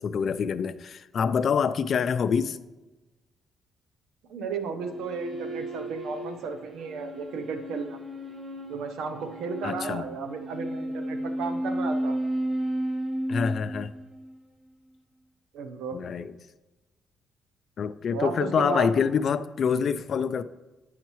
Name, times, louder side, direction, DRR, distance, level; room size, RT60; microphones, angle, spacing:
voice 1, 0.0-2.6 9.6-10.1 13.3-13.9 15.9-16.3 17.8-20.4, left 6 dB, 55° left, 0.3 m, -26 dB
voice 2, 4.3-8.0 8.7-12.2 15.5-16.0 18.1-18.9, right 5 dB, 85° right, 0.7 m, -34 dB
sound 1, 4.6-14.3, right 1 dB, 35° right, 2.3 m, -33 dB
8.9 x 5.7 x 3.0 m
cardioid pair, 90°, 0 cm